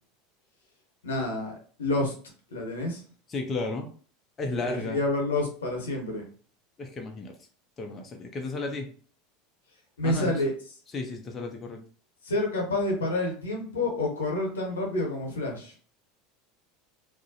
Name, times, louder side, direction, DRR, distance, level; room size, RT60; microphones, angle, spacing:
voice 1, 1.0-2.1 2.5-3.0 4.6-6.2 10.0-10.5 12.2-15.7, left 2 dB, 85° left, 0 dB, 0.9 m, -28 dB
voice 2, 3.3-3.9 4.4-5.0 6.8-7.4 7.8-8.9 10.0-10.3 10.9-11.8, left 3 dB, 30° left, 2 dB, 0.5 m, -33 dB
2.4 x 2.1 x 2.7 m, 0.42 s
hypercardioid pair, 85°, 0 cm